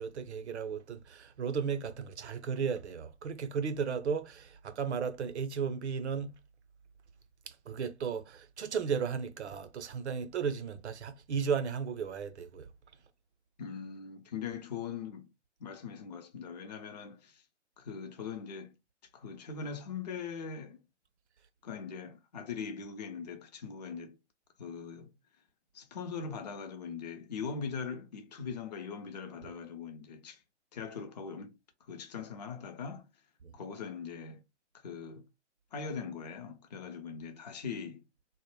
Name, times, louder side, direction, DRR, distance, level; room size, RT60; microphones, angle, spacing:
voice 1, 0.0-6.4 7.5-12.7 29.4-29.5 33.4-33.5, right 6 dB, 70° right, 0.6 m, -35 dB
voice 2, 13.6-15.3 15.6-17.5 17.8-18.7 19.1-20.8 21.6-24.2 24.6-25.1 25.7-30.4 30.7-33.1 33.5-34.4 34.7-35.3 35.7-38.0, left 6 dB, 35° left, 0.4 m, -41 dB
2.0 x 2.0 x 3.0 m
figure-of-eight pair, 135°, 36 cm